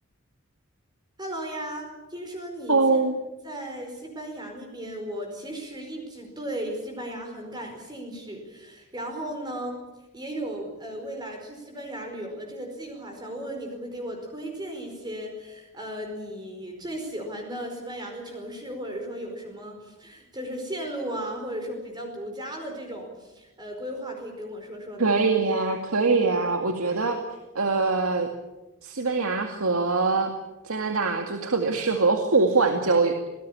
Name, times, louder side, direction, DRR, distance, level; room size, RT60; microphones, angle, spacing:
voice 1, 1.2-3.1 3.4-9.8 10.1-25.1, right 1 dB, 20° right, 3 dB, 4.9 m, -36 dB
voice 2, 2.7-3.1 25.0-27.2 27.5-28.3 28.8-30.3 30.6-33.2, right 3 dB, 80° right, 4 dB, 2.2 m, -23 dB
26.5 x 19.0 x 8.8 m, 1.0 s
head